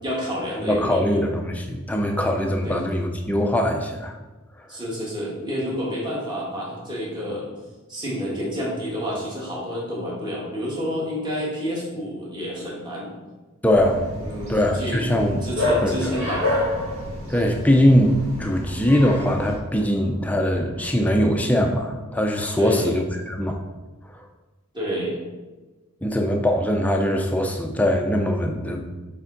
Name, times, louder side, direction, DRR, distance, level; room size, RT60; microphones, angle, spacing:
voice 1, 0.0-1.2 2.6-2.8 4.7-7.4 7.9-13.1 14.2-15.1 15.4-16.5 22.6-22.9 24.7-25.2, equal, 20° right, -5 dB, 1.5 m, -29 dB
voice 2, 0.6-4.2 4.6-4.8 13.6-14.1 14.5-15.4 15.8-16.2 17.3-23.6 24.1-24.3 26.0-28.9, equal, 5° left, 2 dB, 0.5 m, -22 dB
Bark, 13.7-19.6, left 1 dB, 65° right, 1.8 m, -28 dB
6.8 x 3.6 x 3.8 m, 1.2 s
head